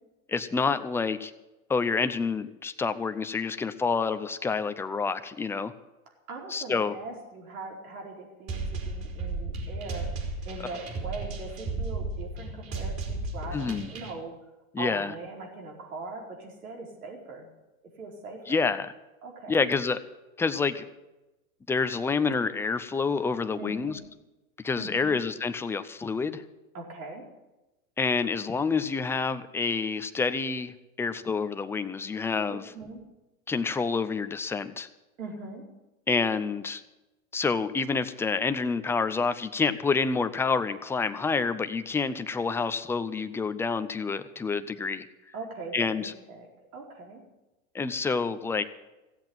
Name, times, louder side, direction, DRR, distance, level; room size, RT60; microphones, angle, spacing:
voice 1, 0.3-1.3 1.7-5.7 6.5-7.0 13.5-13.9 14.7-15.1 18.5-18.9 19.5-20.0 20.4-20.8 21.7-24.0 24.6-26.4 28.0-32.6 33.5-34.9 36.1-36.8 37.3-45.1 45.7-46.1 47.7-48.6, left 4 dB, 5° left, 11 dB, 0.4 m, -28 dB
voice 2, 6.3-10.1 10.4-14.3 14.8-17.5 17.8-18.6 19.2-19.6 23.6-24.0 24.8-25.1 26.7-27.3 32.5-33.0 35.2-35.6 45.3-47.2, right 3 dB, 85° right, 0 dB, 4.6 m, -41 dB
sound 1, 8.5-14.1, right 3 dB, 35° right, 4.3 m, -34 dB
15.5 x 8.0 x 8.9 m, 1.0 s
hypercardioid pair, 115°, 42 cm